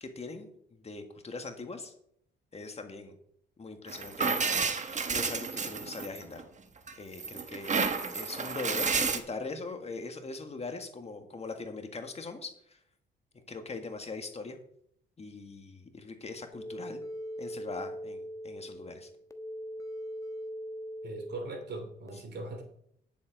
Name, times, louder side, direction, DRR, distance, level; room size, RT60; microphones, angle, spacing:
voice 1, 0.0-1.9 2.5-3.2 3.6-6.4 7.0-12.8 13.3-14.6 15.2-17.0 17.4-19.1, left 3 dB, 30° left, 6 dB, 1.7 m, -41 dB
sound 1, 3.9-6.4 6.9-9.2, right 5 dB, 35° right, 1.3 m, -31 dB
sound 2, 16.5-22.1, equal, 15° left, 1.3 m, -41 dB
voice 2, 21.0-22.6, right 2 dB, 60° right, 5 dB, 2.8 m, -40 dB
10.0 x 7.4 x 5.0 m, 0.69 s
cardioid pair, 90°, 20 cm